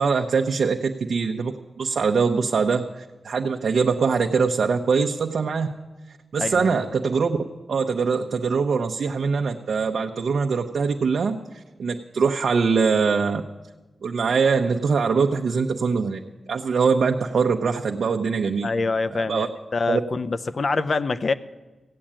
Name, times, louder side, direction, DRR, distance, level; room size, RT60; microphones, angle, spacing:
voice 1, 0.0-5.7 6.3-7.4 7.7-13.4 14.0-16.2 16.5-18.7 19.1-19.5 19.9-20.0, right 5 dB, 70° right, 2 dB, 0.8 m, -23 dB
voice 2, 6.4-6.7 18.6-19.5 19.7-21.3, left 3 dB, 45° left, 13 dB, 0.6 m, -25 dB
16.0 x 8.6 x 8.9 m, 1.1 s
wide cardioid pair, 115°, 0 cm